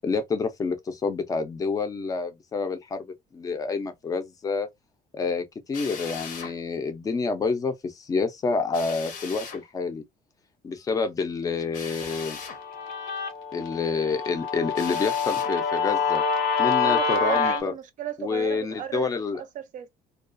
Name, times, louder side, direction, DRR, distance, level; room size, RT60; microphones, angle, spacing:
voice 1, 0.0-4.7 5.1-10.0 10.6-12.4 13.5-16.2 16.6-17.7 18.2-19.4, left 4 dB, 20° left, 0.5 m, -28 dB
Drill, 5.7-6.5 8.7-9.6 11.7-12.6 14.7-15.5, left 6 dB, 55° left, 0.7 m, -39 dB
Guitar, 12.1-17.6, left 5 dB, 85° left, 0.9 m, -26 dB
voice 2, 16.8-19.9, right 9 dB, 50° right, 0.5 m, -36 dB
2.3 x 2.3 x 2.5 m
cardioid pair, 155°, 16 cm